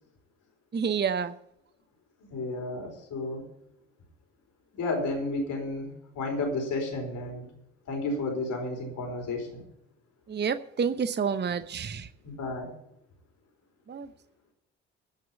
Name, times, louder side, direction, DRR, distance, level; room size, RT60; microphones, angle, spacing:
voice 1, 0.7-1.3 10.3-12.1 13.9-14.1, right 6 dB, 30° right, 12 dB, 0.8 m, -29 dB
voice 2, 2.3-3.4 4.7-7.5 7.9-9.6 12.2-12.7, left 2 dB, 65° left, 2 dB, 4.4 m, -32 dB
15.0 x 6.2 x 7.2 m, 0.77 s
hypercardioid pair, 45°, 33 cm